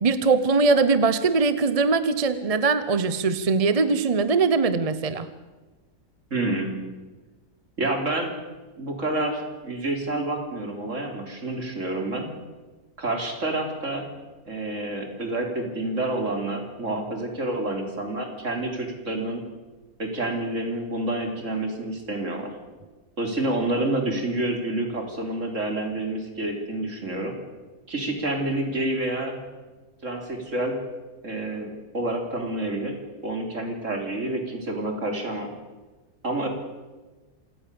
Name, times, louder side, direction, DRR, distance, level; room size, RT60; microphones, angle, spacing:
voice 1, 0.0-5.3, right 4 dB, 30° right, 13 dB, 0.8 m, -21 dB
voice 2, 6.3-6.7 7.8-8.3 8.8-12.3 13.0-14.1 14.5-19.4 20.0-22.5 23.2-27.3 27.9-29.4 30.0-30.8 31.2-32.9 33.2-35.5 36.2-36.5, right 2 dB, 50° right, 3 dB, 4.0 m, -28 dB
27.5 x 18.0 x 7.0 m, 1.2 s
omnidirectional pair, 1.7 m